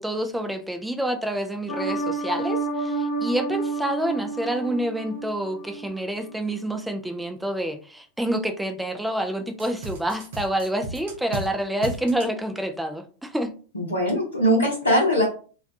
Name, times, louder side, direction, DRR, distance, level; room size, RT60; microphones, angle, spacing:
voice 1, 0.0-13.5, right 1 dB, 5° right, 5 dB, 0.3 m, -28 dB
sound 1, 1.7-5.9 6.3-6.4, right 3 dB, 30° left, 0.7 m, -29 dB
sound 2, 9.6-11.5 11.8-12.3, right 3 dB, 55° right, 0.6 m, -34 dB
voice 2, 13.7-15.2, equal, 75° left, -4 dB, 0.7 m, -21 dB
2.3 x 2.2 x 2.5 m, 0.39 s
figure-of-eight pair, 90°, 0 cm